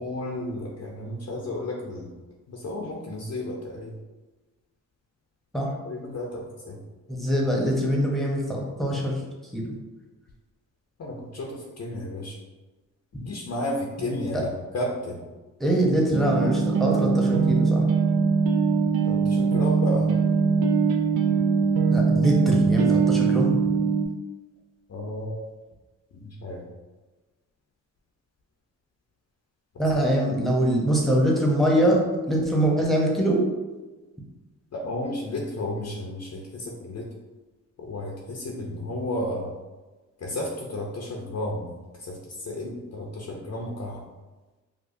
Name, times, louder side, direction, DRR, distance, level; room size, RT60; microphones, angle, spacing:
voice 1, 0.0-2.1 2.5-3.9 5.8-6.8 11.0-12.4 13.1-15.2 19.0-20.1 24.9-25.5 26.1-26.6 34.7-37.1 37.8-39.5 40.2-41.7 42.0-44.0, left 1 dB, 50° left, -2 dB, 0.6 m, -33 dB
voice 2, 7.1-9.2 9.5-9.7 14.0-14.4 15.6-17.8 21.9-23.5 29.8-32.0 32.3-33.4, right 1 dB, ahead, -3 dB, 1.0 m, -23 dB
sound 1, 16.1-24.0, right 5 dB, 85° right, 0.5 m, -22 dB
4.7 x 2.2 x 2.6 m, 1.2 s
cardioid pair, 65°, 35 cm